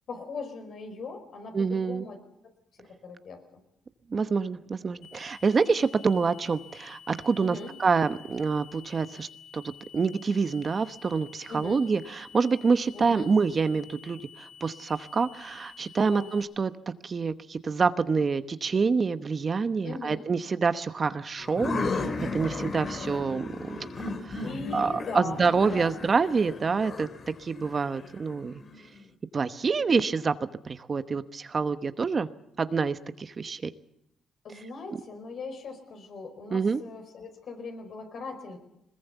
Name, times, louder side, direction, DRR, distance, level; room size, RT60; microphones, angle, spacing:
voice 1, 0.1-2.5 2.8-3.4 7.4-7.7 11.5-11.8 12.9-13.4 16.0-16.3 19.8-20.3 24.4-26.0 34.4-38.6, left 3 dB, 60° left, 6 dB, 5.0 m, -40 dB
voice 2, 1.5-2.1 4.1-9.3 9.5-16.7 17.0-23.8 24.2-24.4 24.7-27.1 27.4-28.6 29.3-30.3 30.6-32.3 32.6-33.7 36.5-36.8, right 5 dB, 40° right, 12 dB, 1.0 m, -27 dB
sound 1, 5.0-16.4, left 7 dB, 90° left, 4.3 m, -50 dB
sound 2, 21.4-29.0, left 3 dB, 45° left, 2.3 m, -35 dB
21.5 x 20.5 x 8.2 m, 0.83 s
cardioid pair, 90°, 0 cm